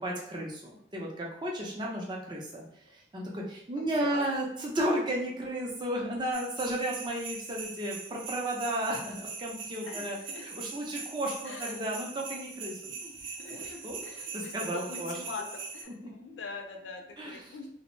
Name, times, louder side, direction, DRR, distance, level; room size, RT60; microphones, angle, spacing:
voice 1, 0.0-2.6 2.9-12.9 13.5-14.0 14.3-15.2 17.2-17.5, right 1 dB, 25° right, -2 dB, 0.4 m, -33 dB
voice 2, 3.8-4.3 9.9-10.5 10.9-11.0 11.4-11.8 13.0-15.5 15.7-17.7, left 4 dB, 75° left, 3 dB, 0.5 m, -43 dB
sound 1, 6.3-15.8, right 5 dB, 80° right, 0.5 m, -42 dB
2.5 x 2.0 x 3.0 m, 0.69 s
head